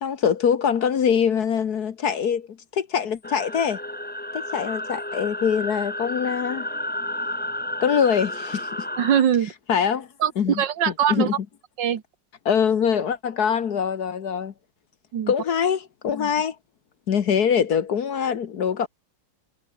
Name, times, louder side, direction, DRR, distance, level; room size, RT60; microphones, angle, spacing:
voice 1, 0.0-2.5 2.7-3.8 4.3-6.7 7.8-8.9 9.7-10.1 10.4-10.6 11.1-11.3 12.4-14.5 15.3-16.5 17.1-18.9, left 7 dB, 60° left, 1.7 m, -23 dB
sound 1, 3.2-9.2, left 1 dB, 5° left, 1.3 m, -32 dB
voice 2, 9.0-9.5 10.2-11.3 11.8-12.0 15.1-15.3, right 9 dB, 80° right, 2.0 m, -22 dB
omnidirectional pair, 1.9 m